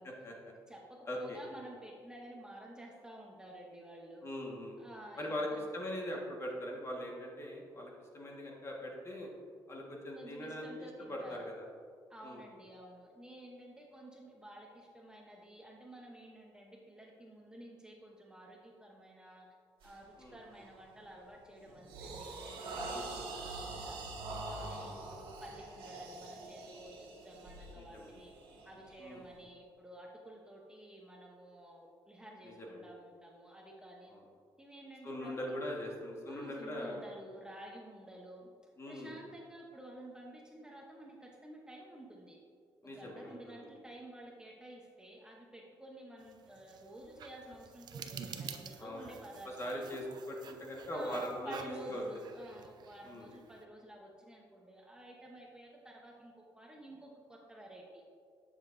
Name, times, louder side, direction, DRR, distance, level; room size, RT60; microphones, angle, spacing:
voice 1, 0.5-4.3 4.8-5.7 10.1-11.5 12.1-19.5 19.8-24.0 24.3-28.3 28.6-34.1 34.6-35.6 36.3-38.5 38.9-42.4 42.8-49.9 50.9-58.0, right 1 dB, 10° right, -1 dB, 0.9 m, -51 dB
voice 2, 1.1-1.4 4.2-4.8 5.2-5.5 5.7-9.3 9.7-10.7 11.1-11.6 12.2-12.4 20.2-20.4 24.7-24.9 27.8-28.1 29.0-29.2 32.4-32.8 35.0-37.0 38.8-39.2 42.8-43.7 48.8-49.1 49.4-52.0 53.0-53.3, equal, 30° left, -1 dB, 1.6 m, -41 dB
sound 1, 19.8-20.0 20.5-20.8 21.3-29.4, right 2 dB, 75° right, 1.5 m, -45 dB
sound 2, 46.2-53.6, right 6 dB, 55° right, 0.6 m, -50 dB
sound 3, 47.4-47.7 48.2-48.5 49.0-49.2 49.9-50.1 51.0-51.1 51.9-52.1, left 1 dB, 15° left, 1.5 m, -58 dB
10.0 x 6.7 x 2.6 m, 2.2 s
cardioid pair, 105°, 9 cm